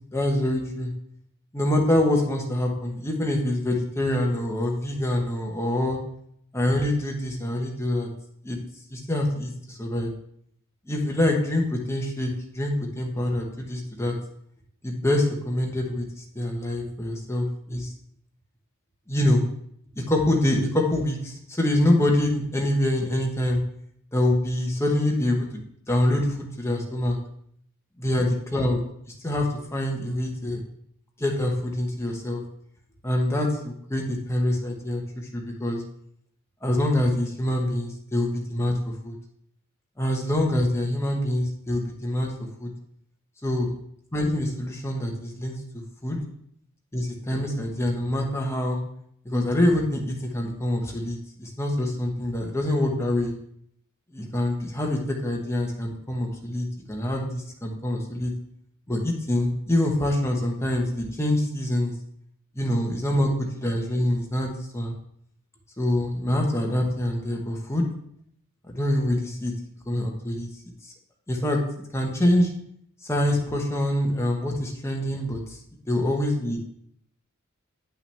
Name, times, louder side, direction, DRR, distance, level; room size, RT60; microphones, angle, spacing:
voice 1, 0.1-0.9 1.5-6.0 6.5-8.1 8.4-8.6 8.9-10.1 10.9-14.1 14.8-17.9 19.1-19.4 19.9-23.6 24.1-25.5 25.9-27.2 28.0-28.8 29.2-30.6 31.2-32.4 33.0-35.8 36.6-39.1 40.0-42.3 42.6-42.7 43.4-43.7 44.1-46.2 46.9-48.8 49.2-53.3 54.1-58.3 58.9-61.9 62.6-63.3 63.6-64.9 65.8-67.8 68.7-69.5 69.9-70.5 70.8-70.9 71.3-71.6 71.9-72.5 73.0-75.6 75.9-76.6, left 1 dB, 10° left, 0 dB, 1.1 m, -25 dB
8.7 x 5.7 x 3.4 m, 0.70 s
head